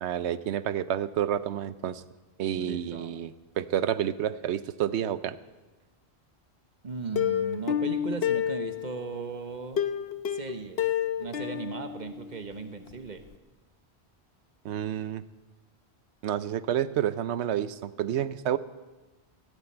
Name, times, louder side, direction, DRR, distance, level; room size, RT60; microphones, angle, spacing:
voice 1, 0.0-2.0 2.4-5.4 14.6-15.2 16.2-18.6, right 10 dB, 85° right, 15 dB, 0.9 m, -29 dB
voice 2, 2.5-3.1 6.8-9.8 10.3-10.9 11.2-13.2, right 4 dB, 45° right, 8 dB, 1.1 m, -37 dB
Plucked string instrument, 7.2-9.1 9.8-12.6 12.9-13.0 13.3-13.4, left 9 dB, 65° left, 1.0 m, -29 dB
17.5 x 15.5 x 4.4 m, 1.2 s
omnidirectional pair, 1.1 m